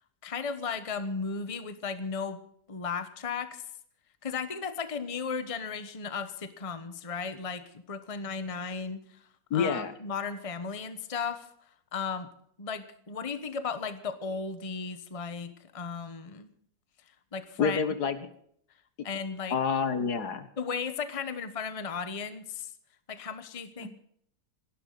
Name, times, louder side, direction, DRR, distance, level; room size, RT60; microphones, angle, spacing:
voice 1, 0.2-2.4 2.7-3.6 4.2-9.2 9.5-11.5 11.9-12.3 12.6-16.5 17.3-17.8 19.0-19.6 20.0-20.1 20.6-22.7 23.1-23.9, left 5 dB, 25° left, 10 dB, 1.1 m, -35 dB
voice 2, 9.5-9.9 17.6-18.2 19.5-20.5 23.8-23.9, left 6 dB, 65° left, 11 dB, 1.8 m, -28 dB
28.0 x 12.0 x 4.1 m, 0.66 s
omnidirectional pair, 1.8 m